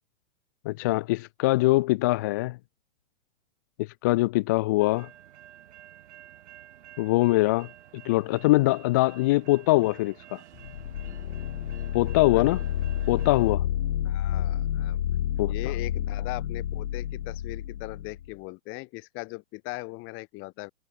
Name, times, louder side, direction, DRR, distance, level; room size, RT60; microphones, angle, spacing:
voice 1, 0.7-2.6 3.8-5.1 7.0-7.7 8.0-10.4 11.9-12.6 13.1-13.7 15.4-15.5, left 20 dB, 15° left, 0.3 m, -23 dB
sound 1, 4.8-13.6, right 11 dB, 65° right, 4.5 m, -50 dB
sound 2, 10.5-18.3, left 11 dB, 70° left, 2.1 m, -30 dB
voice 2, 14.0-15.0 15.5-20.7, left 25 dB, 35° left, 3.5 m, -39 dB
hypercardioid pair, 140°, 37 cm